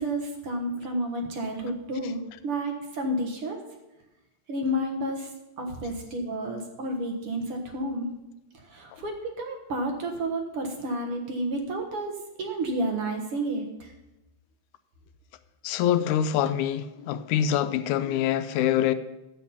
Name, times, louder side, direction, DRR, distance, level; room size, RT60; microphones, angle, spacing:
voice 1, 0.0-3.6 4.5-5.3 5.6-8.1 8.6-13.9, right 1 dB, 55° right, 2.0 m, -31 dB
voice 2, 15.6-18.9, left 10 dB, 90° left, 2.0 m, -25 dB
11.0 x 8.4 x 5.6 m
omnidirectional pair, 3.3 m